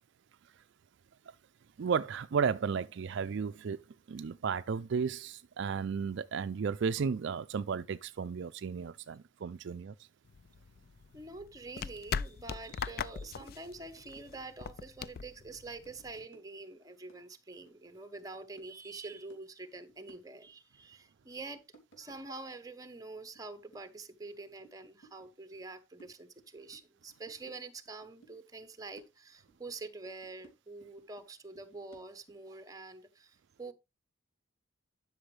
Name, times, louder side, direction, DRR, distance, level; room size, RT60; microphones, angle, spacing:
voice 1, 1.8-10.1, right 6 dB, 60° right, 0.4 m, -34 dB
sound 1, 10.3-16.3, left 6 dB, 50° left, 0.4 m, -40 dB
voice 2, 11.1-21.6 22.0-33.7, right 3 dB, 15° right, 1.0 m, -46 dB
sound 2, 12.7-12.8 13.0-13.5 13.8-14.9 15.1-16.7 17.0-17.9 18.2-18.3 18.6-19.4 19.7-20.5 21.2-22.4 22.9-23.4 23.7-25.3 25.6-26.8 27.1-28.4 28.6-29.7 30.1-31.3 31.5-32.3, right 3 dB, 65° left, 2.9 m, -60 dB
11.5 x 6.1 x 3.3 m
head